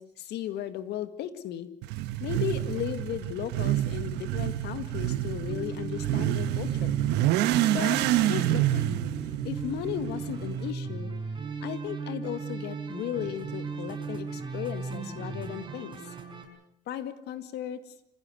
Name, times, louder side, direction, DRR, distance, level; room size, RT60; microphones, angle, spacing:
voice 1, 0.0-1.7 2.2-7.0 7.7-8.0 8.3-9.0 9.4-11.1 11.6-16.1 16.9-17.8, left 11 dB, 75° left, 11 dB, 2.1 m, -35 dB
Motorcycle / Accelerating revving vroom, 1.8-10.7, right 14 dB, 90° right, 1.3 m, -28 dB
sound 1, 5.5-16.4, right 4 dB, 30° right, 5.6 m, -36 dB
27.0 x 15.5 x 8.0 m, 0.79 s
cardioid pair, 110°, 17 cm